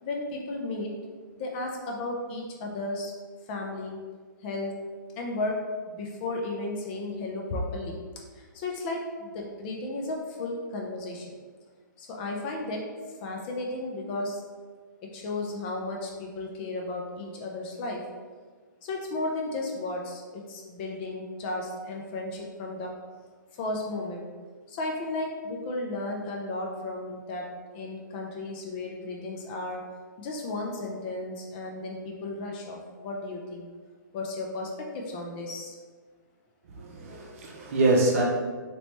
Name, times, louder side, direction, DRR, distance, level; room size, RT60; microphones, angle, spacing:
voice 1, 0.0-0.9 1.4-3.1 3.5-4.0 4.4-4.7 5.2-5.6 5.9-8.0 8.3-11.4 12.0-12.8 13.2-14.4 15.1-18.0 18.8-22.9 23.6-24.3 24.7-27.4 27.7-29.8 30.2-33.7 34.1-35.8, left 2 dB, 30° left, 0 dB, 0.5 m, -34 dB
voice 2, 36.7-38.2, right 2 dB, 40° right, -1 dB, 0.7 m, -25 dB
3.0 x 3.0 x 3.1 m, 1.5 s
figure-of-eight pair, 130°, 11 cm